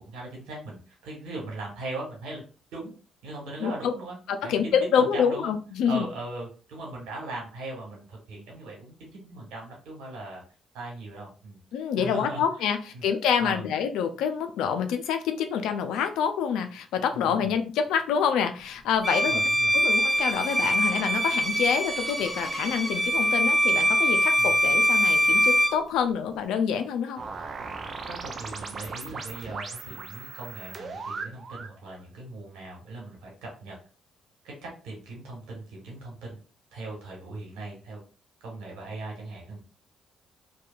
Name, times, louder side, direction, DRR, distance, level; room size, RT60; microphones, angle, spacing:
voice 1, 0.1-2.4 2.7-2.9 3.2-4.2 4.4-5.5 5.8-10.4 10.7-11.6 12.0-12.4 12.9-13.0 13.4-13.6 17.1-17.5 19.1-19.8 24.4-24.5 28.1-33.8 34.4-36.4 36.7-38.0 38.4-39.6, right 2 dB, 85° right, -1 dB, 1.3 m, -39 dB
voice 2, 3.6-3.9 4.3-6.1 11.7-19.4 19.7-27.2, left 7 dB, 80° left, 7 dB, 0.4 m, -27 dB
Bowed string instrument, 19.0-25.8, equal, 5° left, 0.9 m, -23 dB
sound 1, 27.2-31.8, right 4 dB, 50° right, 0.5 m, -38 dB
2.7 x 2.2 x 2.4 m, 0.36 s
supercardioid pair, 60°, 0 cm